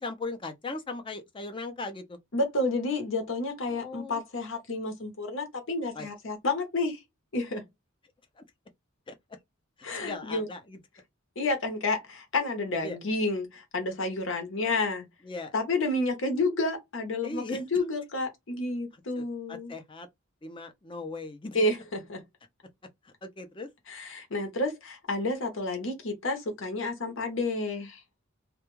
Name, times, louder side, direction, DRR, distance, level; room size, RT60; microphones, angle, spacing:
voice 1, 0.0-2.2 3.6-4.2 5.9-6.1 8.4-8.5 9.1-9.2 9.9-10.8 12.8-13.0 15.2-15.5 17.2-17.8 19.1-20.1 20.4-21.7 23.0-23.7, left 3 dB, 25° left, 0.5 m, -38 dB
voice 2, 2.3-7.0 7.3-7.6 9.8-10.5 11.4-15.1 15.5-19.7 21.5-22.2 23.9-28.0, left 2 dB, 65° left, 0.8 m, -30 dB
2.2 x 2.2 x 3.0 m
head